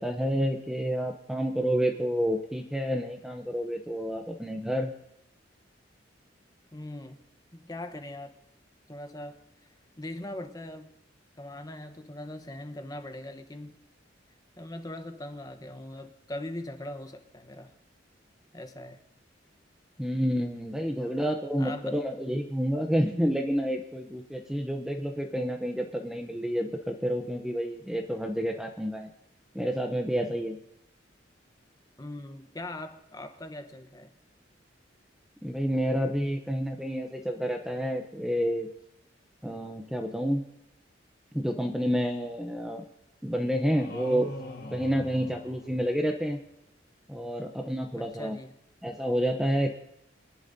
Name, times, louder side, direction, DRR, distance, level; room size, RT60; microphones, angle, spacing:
voice 1, 0.0-4.9 20.0-29.1 29.5-30.6 35.4-38.7 39.4-40.4 41.3-42.8 43.2-44.3 44.7-46.4 47.1-48.4 48.8-49.8, equal, 5° right, 3 dB, 0.7 m, -29 dB
voice 2, 6.7-7.2 7.5-8.3 8.9-9.4 10.0-10.9 11.4-13.8 14.6-17.7 18.5-19.0 21.0-21.1 21.6-22.0 32.0-34.1 48.0-48.6, left 1 dB, 20° left, 7 dB, 1.0 m, -40 dB
sound 1, 43.7-46.3, left 2 dB, 55° left, 1.6 m, -41 dB
24.5 x 11.0 x 2.7 m, 0.87 s
head